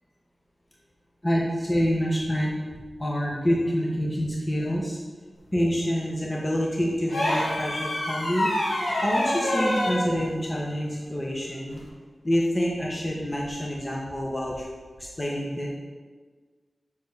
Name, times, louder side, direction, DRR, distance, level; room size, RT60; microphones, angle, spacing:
voice 1, 1.2-2.6 3.0-5.0 5.5-8.5 9.0-11.8 12.2-14.7 15.0-15.7, equal, 20° left, -3 dB, 1.0 m, -27 dB
sound 1, 7.1-10.0 11.7-11.9, left 1 dB, 90° left, 1.5 m, -26 dB
5.4 x 5.1 x 6.5 m, 1.5 s
wide cardioid pair, 75°, 0 cm